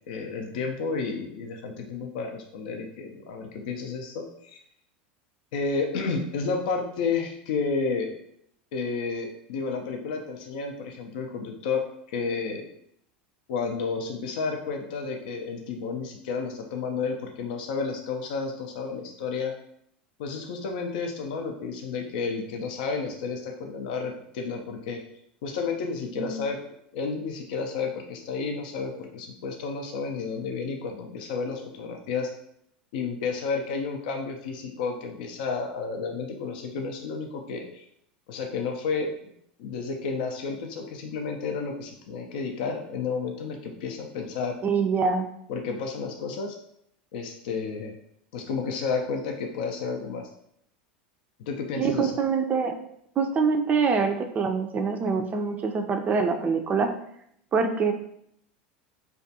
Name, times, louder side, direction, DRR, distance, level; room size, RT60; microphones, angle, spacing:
voice 1, 0.1-4.6 5.5-8.1 8.7-11.8 12.1-12.6 13.5-19.5 20.2-25.0 25.4-26.6 26.9-32.3 32.9-37.8 38.3-39.1 39.6-44.6 45.5-46.6 47.1-47.9 48.3-50.3 51.4-52.1, left 4 dB, 70° left, 3 dB, 0.4 m, -31 dB
voice 2, 44.6-45.3 51.8-52.8 53.2-56.9 57.5-57.9, right 5 dB, 30° right, 6 dB, 0.3 m, -25 dB
2.4 x 2.2 x 2.7 m, 0.72 s
hypercardioid pair, 90°, 5 cm